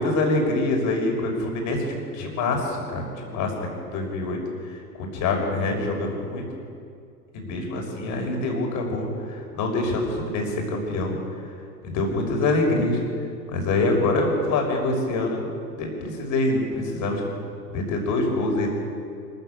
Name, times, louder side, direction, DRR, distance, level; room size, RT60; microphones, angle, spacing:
voice 1, 0.0-6.4 7.3-11.2 11.8-13.0 13.5-17.2 17.7-18.7, left 2 dB, 35° left, 2 dB, 6.2 m, -25 dB
25.5 x 14.5 x 8.6 m, 2.3 s
hypercardioid pair, 105°, 49 cm